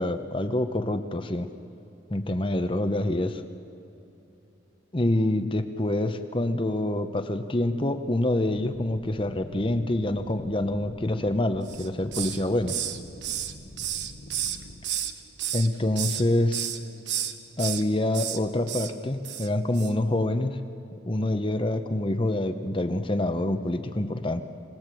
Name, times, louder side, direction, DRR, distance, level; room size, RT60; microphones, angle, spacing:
voice 1, 0.0-1.5 2.1-3.4 4.9-12.8 15.5-16.7 17.6-20.6 21.1-24.4, left 1 dB, 30° left, 8 dB, 0.9 m, -26 dB
sound 1, 8.4-14.8, left 1 dB, 55° left, 1.3 m, -46 dB
Hiss, 11.7-12.4 12.7-15.1 15.4-16.2 16.5-16.8 17.1-17.8 18.1-18.4 18.7-18.9 19.2-19.5 19.7-19.9, right 10 dB, 70° right, 1.1 m, -31 dB
27.0 x 18.0 x 7.7 m, 2.9 s
head